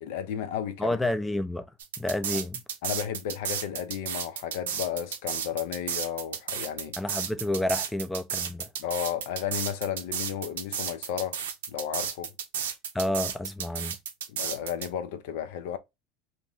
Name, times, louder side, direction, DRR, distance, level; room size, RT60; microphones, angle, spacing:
voice 1, 0.0-1.0 2.3-2.4 2.8-6.9 8.8-11.4 11.7-12.3 14.3-15.8, left 9 dB, 75° left, 0.4 m, -33 dB
voice 2, 0.8-1.7 2.0-2.6 7.0-8.7 12.9-14.0, left 1 dB, 10° left, 0.4 m, -29 dB
sound 1, 1.8-14.9, right 8 dB, 90° right, 0.5 m, -33 dB
2.5 x 2.1 x 3.5 m
hypercardioid pair, 100°, 0 cm